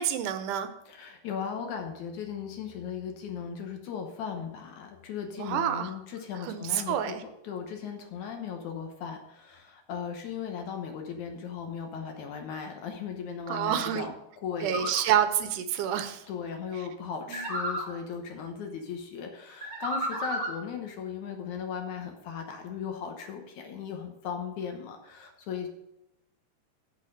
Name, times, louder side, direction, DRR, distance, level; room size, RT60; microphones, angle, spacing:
voice 1, 0.0-0.7 5.4-5.9 6.4-7.2 13.5-14.1 14.6-16.2 17.3-17.4, right 10 dB, 75° right, 10 dB, 2.1 m, -28 dB
voice 2, 0.9-7.2 7.4-14.1 14.4-14.9 16.3-25.7, left 7 dB, 70° left, 4 dB, 2.2 m, -37 dB
sound 1, 14.7-15.0 17.3-17.9 19.6-20.6, equal, 30° right, 1.2 m, -32 dB
8.2 x 6.5 x 6.6 m, 0.84 s
omnidirectional pair, 4.0 m